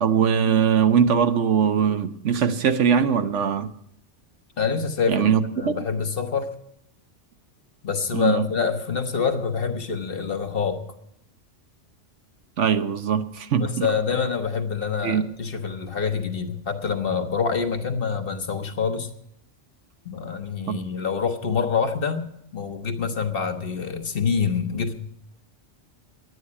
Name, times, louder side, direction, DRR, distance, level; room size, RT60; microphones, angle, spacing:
voice 1, 0.0-3.7 5.1-5.8 8.1-8.4 12.6-13.9 15.0-15.2 20.7-20.8, right 7 dB, 75° right, 1.2 m, -21 dB
voice 2, 4.6-6.5 7.8-10.8 13.6-19.1 20.0-24.9, left 6 dB, 50° left, 1.3 m, -26 dB
11.5 x 9.5 x 9.7 m
omnidirectional pair, 1.2 m